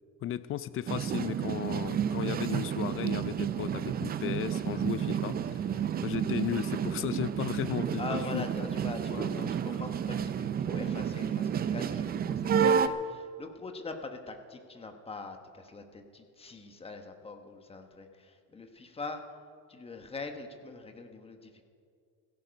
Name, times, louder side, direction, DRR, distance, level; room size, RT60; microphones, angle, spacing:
voice 1, 0.2-5.6 6.0-8.5 9.1-9.2 9.7-9.8, left 11 dB, 40° left, 15 dB, 0.5 m, -35 dB
sound 1, 0.9-12.9, right 8 dB, 25° right, 0.5 m, -31 dB
voice 2, 8.0-19.2 19.7-21.6, left 3 dB, 15° left, 5 dB, 1.1 m, -42 dB
16.5 x 14.5 x 5.2 m, 2.3 s
cardioid pair, 155°, 34 cm